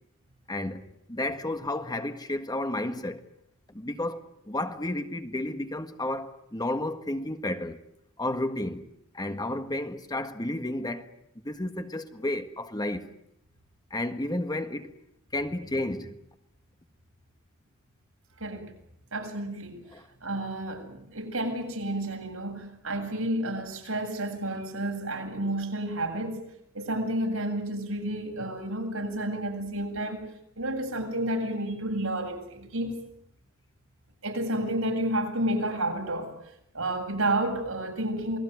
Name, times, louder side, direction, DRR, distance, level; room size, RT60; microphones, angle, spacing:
voice 1, 0.5-3.2 3.7-7.8 8.2-8.8 9.1-11.1 11.4-13.1 13.9-14.9 15.3-16.2 19.9-20.1, left 1 dB, 20° left, 1.5 m, -32 dB
voice 2, 18.4-18.7 19.1-19.8 20.2-26.4 26.7-30.2 30.6-33.0 34.2-36.3 36.7-38.4, right 1 dB, 80° right, 7.8 m, -30 dB
28.0 x 21.0 x 9.5 m
head